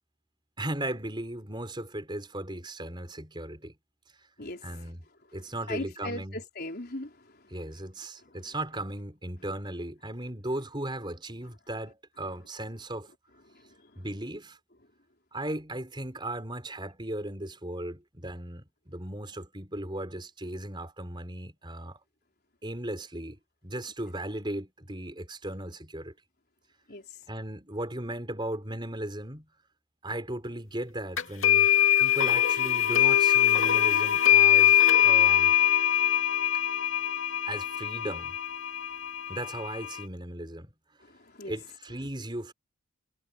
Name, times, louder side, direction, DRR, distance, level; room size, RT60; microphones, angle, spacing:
voice 1, 0.6-3.8 4.2-4.3 4.6-5.0 5.3-6.4 7.5-13.1 14.0-14.6 15.3-22.0 22.6-26.1 27.3-29.5 30.0-31.7 32.0-35.6 37.5-38.3 39.3-40.7 41.5-42.5, right 1 dB, 20° right, 5.3 m, -37 dB
voice 2, 5.7-7.1 13.8-13.9 26.9-27.0 41.1-41.5, left 1 dB, 50° left, 4.6 m, -38 dB
sound 1, 31.2-40.0, left 10 dB, 70° left, 2.4 m, -23 dB
head